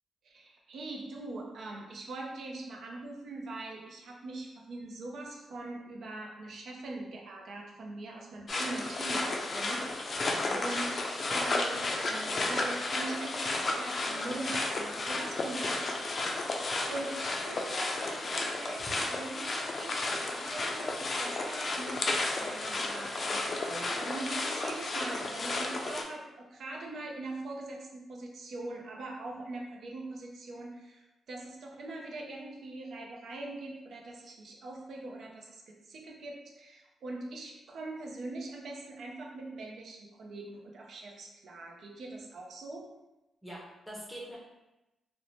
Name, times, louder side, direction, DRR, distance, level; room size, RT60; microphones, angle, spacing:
voice 1, 0.2-10.3 10.5-11.0 11.3-16.3 16.9-42.9, right 2 dB, 70° right, 0 dB, 0.5 m, -42 dB
sound 1, 8.5-26.0, left 2 dB, 45° left, 0.4 m, -33 dB
voice 2, 10.3-10.7 43.4-44.4, equal, ahead, -5 dB, 0.7 m, -44 dB
2.6 x 2.1 x 3.0 m, 0.98 s
cardioid pair, 90°, 0 cm